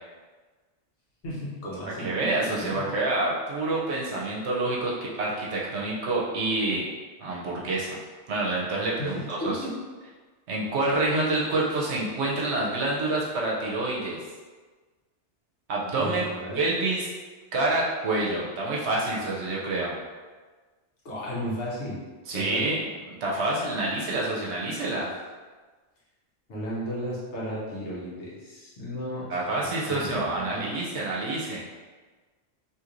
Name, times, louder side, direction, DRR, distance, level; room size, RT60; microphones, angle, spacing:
voice 1, 1.2-3.0 9.0-9.7 16.0-16.6 21.0-22.0 22.3-22.6 26.5-30.6, equal, 80° left, -7 dB, 1.2 m, -35 dB
voice 2, 2.0-6.9 7.2-8.0 8.3-9.5 10.5-14.2 15.7-16.3 16.5-17.1 17.5-19.9 22.3-22.8 23.1-25.1 29.3-31.7, right 2 dB, 75° right, -4 dB, 0.9 m, -27 dB
2.9 x 2.9 x 2.5 m, 1.3 s
omnidirectional pair, 1.2 m